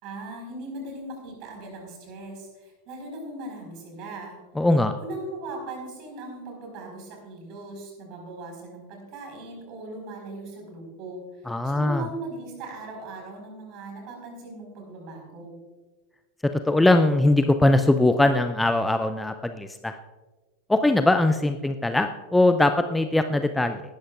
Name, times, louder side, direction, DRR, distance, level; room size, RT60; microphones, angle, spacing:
voice 1, 0.0-4.4 5.0-15.6, right 2 dB, 40° right, 2 dB, 4.6 m, -39 dB
voice 2, 4.6-5.0 11.5-12.0 16.4-20.0 20.7-23.8, left 2 dB, 5° left, 9 dB, 0.5 m, -21 dB
18.5 x 12.5 x 2.4 m, 1.3 s
figure-of-eight pair, 90°, 0 cm